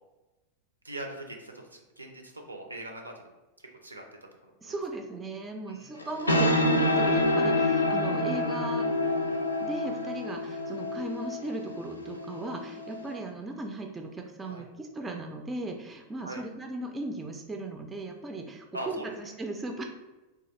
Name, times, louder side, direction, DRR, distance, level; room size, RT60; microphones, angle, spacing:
voice 1, 0.8-3.3 3.8-4.0 4.4-4.7 5.7-6.0 14.4-14.6 16.2-16.4 18.7-19.1, right 1 dB, 80° right, 3 dB, 0.4 m, -41 dB
voice 2, 4.6-8.9 9.6-19.8, right 2 dB, 15° right, 3 dB, 0.3 m, -37 dB
sound 1, 6.0-13.2, left 1 dB, 80° left, 0.3 m, -27 dB
2.8 x 2.3 x 3.1 m, 1.1 s
figure-of-eight pair, 90°, 0 cm